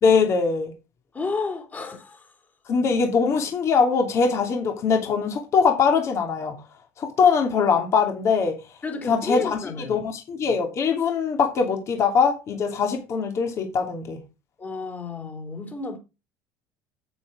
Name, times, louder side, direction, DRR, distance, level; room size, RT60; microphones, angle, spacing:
voice 1, 0.0-0.7 2.7-6.5 7.0-8.6 9.1-9.6 9.9-14.2, left 5 dB, 45° left, 2.8 m, -22 dB
voice 2, 1.1-2.3 8.8-10.0 14.6-16.0, left 4 dB, 25° left, 3.6 m, -31 dB
9.3 x 8.7 x 5.0 m
cardioid pair, 120°, 7 cm